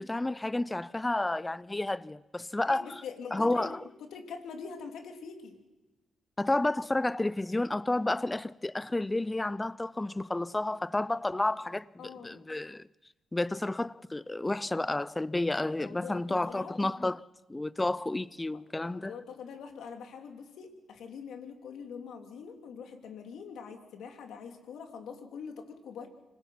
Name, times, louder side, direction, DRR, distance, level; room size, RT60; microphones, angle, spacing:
voice 1, 0.0-2.9 3.3-3.8 6.4-12.9 13.3-17.2 17.5-19.1, left 2 dB, 15° left, 0.6 m, -31 dB
voice 2, 2.7-3.7 4.0-5.6 12.0-12.4 15.8-16.8 18.5-26.1, left 6 dB, 80° left, 3.0 m, -44 dB
26.0 x 19.5 x 5.9 m
cardioid pair, 70°, 0 cm